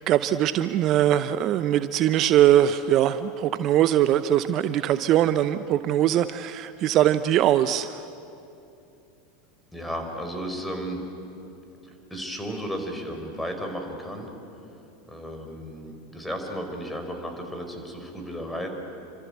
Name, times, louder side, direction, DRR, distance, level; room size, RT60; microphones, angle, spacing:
voice 1, 0.0-8.0, right 12 dB, 45° right, 13 dB, 0.7 m, -21 dB
voice 2, 9.7-11.0 11.8-14.3 15.1-18.7, equal, 5° left, 4 dB, 5.1 m, -34 dB
28.5 x 25.5 x 8.2 m, 2.8 s
figure-of-eight pair, 80°, 0 cm